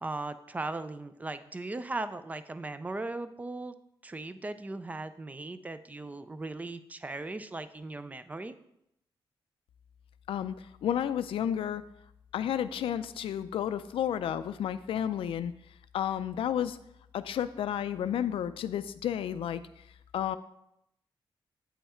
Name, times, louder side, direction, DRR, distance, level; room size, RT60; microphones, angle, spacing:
voice 1, 0.0-3.7 4.0-8.5, right 2 dB, 15° right, 12 dB, 0.4 m, -38 dB
voice 2, 10.8-11.8 12.3-15.5 15.9-16.8 17.1-19.8 20.1-20.4, left 10 dB, 90° left, 12 dB, 0.4 m, -31 dB
8.4 x 5.6 x 4.3 m, 0.80 s
wide cardioid pair, 155°, 9 cm